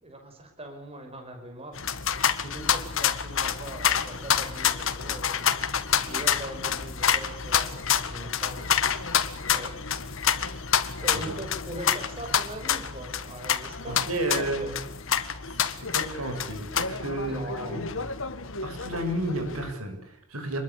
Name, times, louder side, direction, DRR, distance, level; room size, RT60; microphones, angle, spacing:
voice 1, 0.0-1.8 2.4-8.8 9.5-9.8 11.0-14.7 17.3-18.1, right 1 dB, 25° right, 4 dB, 5.9 m, -41 dB
sound 1, 1.7-19.7, left 8 dB, 60° left, 1.9 m, -28 dB
voice 2, 13.9-14.7 15.5-17.9 18.6-20.6, right 1 dB, 80° right, 7 dB, 7.2 m, -32 dB
27.5 x 22.0 x 8.4 m, 0.67 s
head